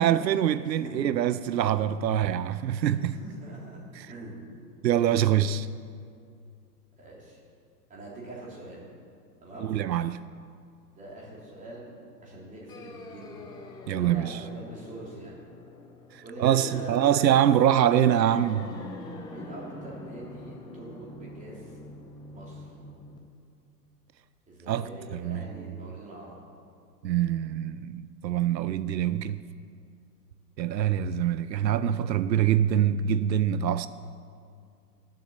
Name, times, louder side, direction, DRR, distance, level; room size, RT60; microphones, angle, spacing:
voice 1, 0.0-3.2 4.0-4.1 4.8-5.7 9.6-10.2 13.9-14.4 16.1-18.7 24.7-24.9 25.1-25.7 27.0-29.4 30.6-33.9, right 10 dB, 90° right, 0.6 m, -24 dB
voice 2, 0.6-1.1 3.0-4.4 7.0-7.4 7.9-8.8 9.4-9.8 10.9-13.5 14.0-15.4 16.2-17.0 19.2-21.7 22.3-22.7 24.5-26.4, right 2 dB, 15° right, 3.4 m, -43 dB
sound 1, 12.7-23.2, left 2 dB, 10° left, 0.6 m, -44 dB
13.0 x 7.7 x 7.3 m
hypercardioid pair, 130°, 50 cm